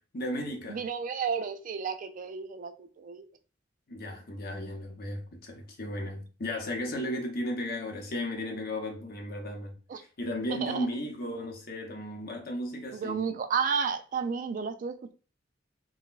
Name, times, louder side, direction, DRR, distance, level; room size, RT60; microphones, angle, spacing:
voice 1, 0.1-0.8 3.9-13.2, left 1 dB, 55° left, 0.8 m, -35 dB
voice 2, 0.7-3.2 9.9-10.0 10.6-10.9 12.9-15.1, right 6 dB, 45° right, 0.3 m, -32 dB
3.8 x 2.2 x 2.4 m
head